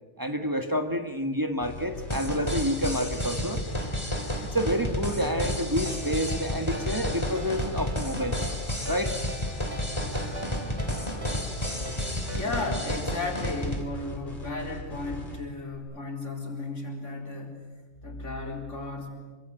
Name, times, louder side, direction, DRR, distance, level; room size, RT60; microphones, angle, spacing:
voice 1, 0.2-3.6 4.4-8.5 8.9-9.2, equal, 15° right, 6 dB, 1.6 m, -29 dB
sound 1, 1.6-15.8, left 1 dB, 45° left, 3.0 m, -40 dB
sound 2, 2.1-13.8, left 1 dB, 25° left, 3.2 m, -32 dB
Ringtone, 5.9-12.7, equal, 85° right, 3.7 m, -42 dB
voice 2, 12.3-17.7 18.0-19.1, left 2 dB, 90° left, 1 dB, 4.7 m, -34 dB
26.5 x 25.0 x 7.9 m, 1.3 s
omnidirectional pair, 1.2 m